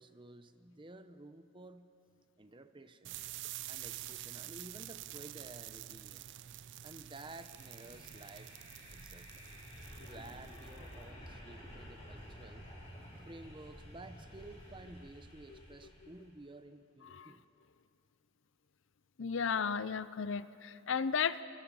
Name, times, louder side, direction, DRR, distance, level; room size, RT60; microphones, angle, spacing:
voice 1, 0.0-1.9 2.4-3.2 3.7-6.2 6.8-8.5 8.9-9.4 10.0-12.7 13.3-17.4, right 2 dB, 20° right, 10 dB, 0.8 m, -53 dB
sound 1, 3.0-10.9, right 14 dB, 55° right, 0.4 m, -48 dB
sound 2, 7.1-16.3, equal, 30° left, 5.7 m, -52 dB
voice 2, 19.2-21.4, left 6 dB, 60° left, 15 dB, 0.5 m, -34 dB
29.0 x 21.5 x 5.5 m, 2.6 s
head